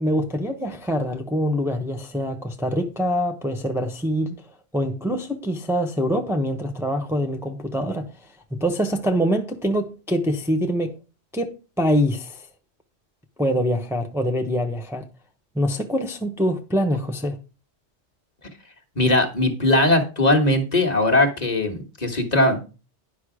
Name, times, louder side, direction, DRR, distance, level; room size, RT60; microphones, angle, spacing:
voice 1, 0.0-4.4 4.7-8.0 8.6-10.9 11.3-11.5 11.8-12.5 13.4-15.0 15.5-17.4, equal, ahead, 0.9 m, -24 dB
voice 2, 19.0-22.6, left 1 dB, 35° left, 1.7 m, -19 dB
10.5 x 5.6 x 4.9 m
omnidirectional pair, 1.2 m